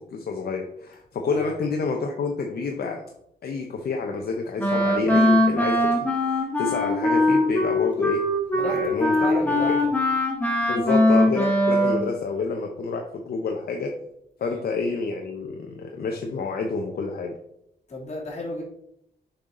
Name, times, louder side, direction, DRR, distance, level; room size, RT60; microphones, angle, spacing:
voice 1, 0.1-3.0 3.4-8.2 8.6-9.6 10.7-13.9 14.4-17.3, left 4 dB, 65° left, 2 dB, 0.8 m, -28 dB
voice 2, 1.2-1.6 8.5-9.9 14.4-14.7 17.9-18.6, left 1 dB, 40° left, -3 dB, 2.6 m, -34 dB
Wind instrument woodwind instrument, 4.6-12.1, left 1 dB, 10° left, 1.5 m, -21 dB
6.8 x 5.6 x 3.8 m, 0.76 s
wide cardioid pair, 145°, 17 cm